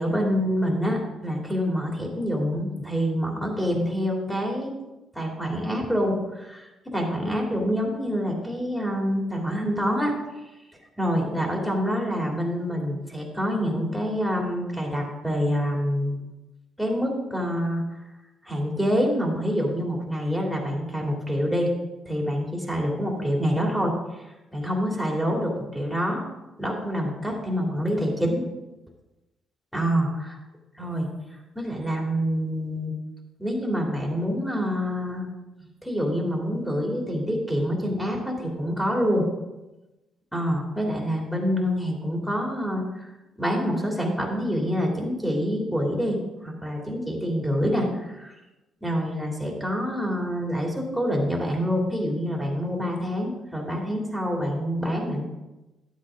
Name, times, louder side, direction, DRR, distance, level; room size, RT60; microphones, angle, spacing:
voice 1, 0.0-4.7 5.1-10.1 11.0-16.2 16.8-17.8 18.4-21.7 22.0-23.9 24.5-26.2 26.6-28.4 29.7-30.4 30.8-31.1 31.5-32.9 33.4-35.3 35.8-39.3 40.3-43.1 43.4-48.3 48.8-55.3, equal, ahead, -1 dB, 2.9 m, -26 dB
12.0 x 8.2 x 3.7 m, 1.0 s
cardioid pair, 90°, 0 cm